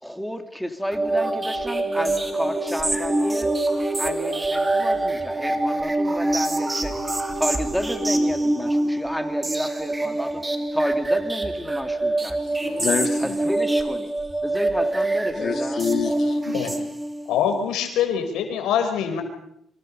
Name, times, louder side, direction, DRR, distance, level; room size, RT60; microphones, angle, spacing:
voice 1, 0.0-3.5 4.0-10.4 10.7-12.4 13.2-14.1 14.4-15.9, equal, ahead, 5 dB, 3.0 m, -31 dB
sound 1, 0.9-17.3, right 2 dB, 20° right, 3.0 m, -25 dB
voice 2, 12.4-13.4 15.3-16.4, left 6 dB, 55° left, 5 dB, 3.5 m, -27 dB
voice 3, 17.3-19.2, left 8 dB, 90° left, 6 dB, 4.8 m, -24 dB
27.0 x 25.5 x 5.6 m, 0.76 s
cardioid pair, 90°, 0 cm